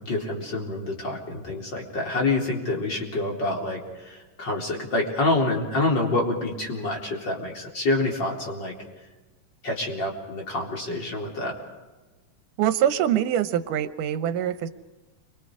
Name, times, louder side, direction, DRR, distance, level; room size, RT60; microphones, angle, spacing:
voice 1, 0.0-8.7 9.6-11.5, left 2 dB, 35° left, -1 dB, 4.5 m, -27 dB
voice 2, 12.6-14.7, right 10 dB, 80° right, 11 dB, 2.6 m, -24 dB
30.0 x 25.0 x 4.9 m, 1.2 s
omnidirectional pair, 3.7 m